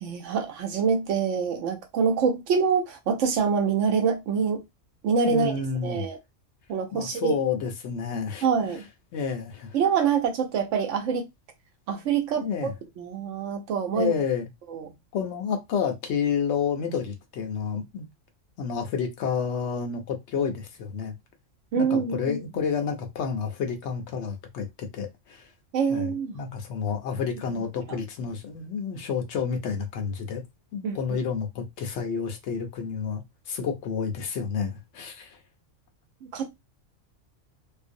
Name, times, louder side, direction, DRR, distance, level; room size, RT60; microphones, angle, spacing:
voice 1, 0.0-4.6 5.0-5.5 5.8-6.2 6.7-7.3 8.4-8.9 9.7-11.3 11.9-12.7 13.0-14.1 14.7-14.9 21.7-22.4 25.7-26.4 27.9-28.0 30.8-31.0 36.2-36.5, right 6 dB, 80° right, 1.0 m, -25 dB
voice 2, 5.2-6.1 6.9-8.8 9.1-9.7 12.4-12.7 13.9-14.5 15.1-18.1 18.6-21.1 21.8-25.5 25.9-26.1 26.3-30.4 30.7-35.4, left 6 dB, 70° left, 0.8 m, -30 dB
2.5 x 2.0 x 2.5 m
omnidirectional pair, 1.3 m